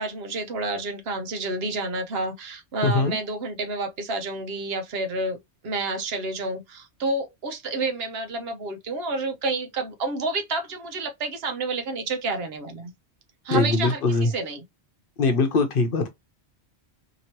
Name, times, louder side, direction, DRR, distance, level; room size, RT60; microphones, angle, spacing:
voice 1, 0.0-5.4 5.6-12.9 13.4-14.6, right 2 dB, 65° right, 1.0 m, -29 dB
voice 2, 2.8-3.2 13.5-14.3 15.2-16.1, left 3 dB, 60° left, 0.9 m, -21 dB
2.9 x 2.9 x 2.8 m
omnidirectional pair, 1.1 m